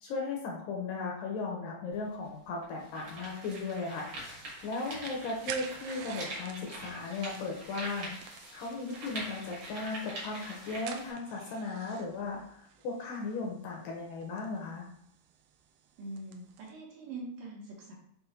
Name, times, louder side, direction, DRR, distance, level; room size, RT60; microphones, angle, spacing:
voice 1, 0.0-14.8, left 3 dB, 70° left, -1 dB, 2.2 m, -37 dB
sound 1, 1.9-2.0 2.6-11.1, right 1 dB, 45° right, 1.7 m, -44 dB
sound 2, 4.4-16.7, right 8 dB, 85° right, 1.9 m, -50 dB
voice 2, 16.0-17.9, right 2 dB, 65° right, -3 dB, 2.8 m, -43 dB
7.0 x 3.1 x 4.3 m, 0.74 s
omnidirectional pair, 4.4 m